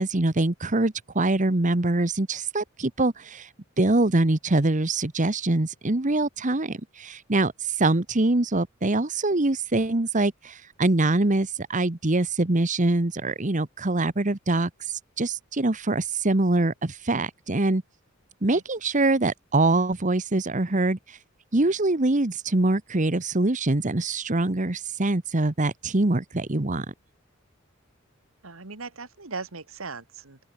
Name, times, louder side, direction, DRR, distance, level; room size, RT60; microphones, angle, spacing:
voice 1, 0.0-3.5 3.8-7.5 7.8-14.7 15.2-17.8 18.4-21.0 21.5-26.9, right 2 dB, 35° right, 1.2 m, -24 dB
voice 2, 28.4-30.4, right 4 dB, 75° right, 2.0 m, -38 dB
open air
head